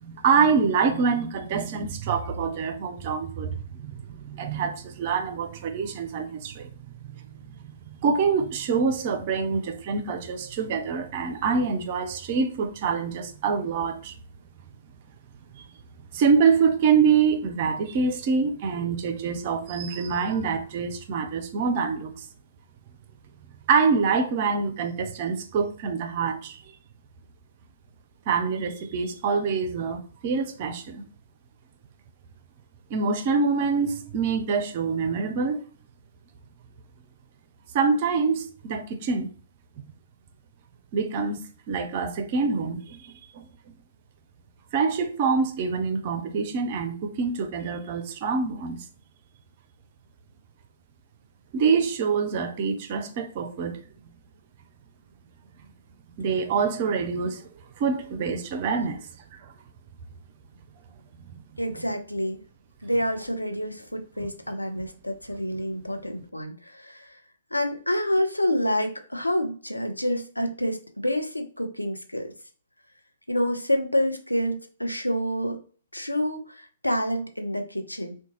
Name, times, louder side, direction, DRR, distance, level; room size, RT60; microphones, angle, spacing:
voice 1, 0.0-6.7 7.0-7.1 8.0-14.2 16.1-22.1 23.7-26.6 28.3-31.0 32.9-35.6 37.7-39.3 40.9-41.4 41.7-43.1 43.3-43.4 44.7-48.8 51.5-53.8 56.2-57.4 57.8-59.0 61.3-61.4 64.2-64.3, right 5 dB, 40° right, 0.5 m, -25 dB
voice 2, 61.6-62.4 62.8-67.2 67.5-72.3 73.3-75.6 75.9-78.1, equal, 85° left, 0.6 m, -28 dB
3.7 x 2.2 x 3.0 m
figure-of-eight pair, 115°, 0 cm